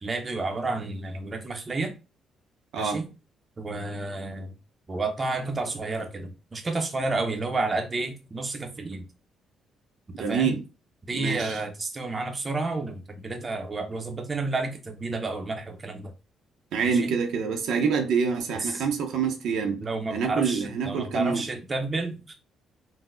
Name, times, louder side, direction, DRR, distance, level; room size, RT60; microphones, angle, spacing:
voice 1, 0.0-1.9 2.8-3.1 3.6-4.5 4.9-9.1 10.2-10.5 11.1-16.1 16.9-17.1 18.5-18.8 19.8-22.4, right 3 dB, 30° right, 0.6 m, -31 dB
voice 2, 10.2-10.6 11.1-11.6 16.7-19.8 20.1-21.4, right 6 dB, 80° right, 0.7 m, -26 dB
3.8 x 2.1 x 2.6 m
cardioid pair, 90°, 0 cm